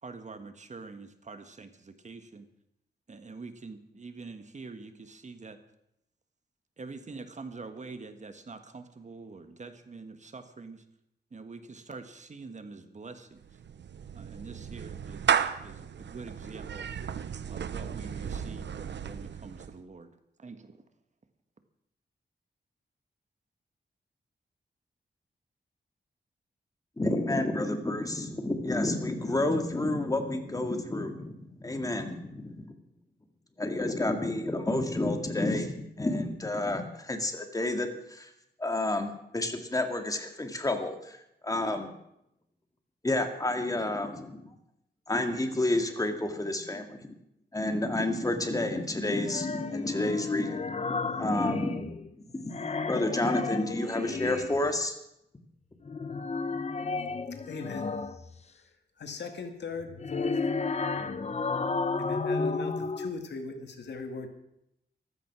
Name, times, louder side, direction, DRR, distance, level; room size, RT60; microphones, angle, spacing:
voice 1, 0.0-2.5 3.1-5.6 6.8-10.8 11.3-13.6 14.1-15.3 15.6-16.9 17.5-20.8, right 4 dB, 40° right, 9 dB, 1.5 m, -45 dB
Clapping / Meow, 13.4-19.8, right 7 dB, 85° right, 0.9 m, -34 dB
voice 2, 27.0-32.7 33.6-38.3 38.6-39.1 39.3-41.9 43.0-44.5 45.1-47.1 47.5-55.0, left 2 dB, 20° left, 5 dB, 2.1 m, -30 dB
sound 1, 49.2-52.1 52.4-54.7 55.8-58.4 59.8-63.1, left 4 dB, 35° left, 1.0 m, -32 dB
voice 3, 57.5-57.9 59.0-60.4 62.0-64.3, left 4 dB, 75° left, 6 dB, 2.1 m, -39 dB
15.0 x 13.0 x 6.1 m, 0.80 s
wide cardioid pair, 120°, 18 cm